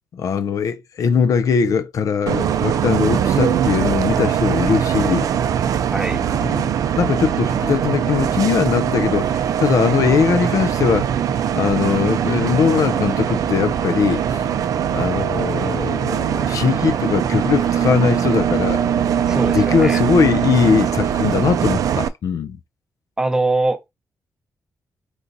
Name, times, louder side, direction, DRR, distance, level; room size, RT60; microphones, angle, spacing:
voice 1, 0.1-5.3 6.4-11.1 11.5-14.4 14.9-18.8 19.5-22.6, left 6 dB, 65° left, 0.4 m, -20 dB
Bus, 2.3-22.1, right 9 dB, 70° right, 0.4 m, -21 dB
Truck, 2.8-21.5, left 4 dB, 45° left, 1.3 m, -44 dB
voice 2, 19.3-20.0 23.2-23.9, right 2 dB, 10° right, 0.7 m, -22 dB
4.6 x 2.7 x 3.9 m
wide cardioid pair, 170°, 6 cm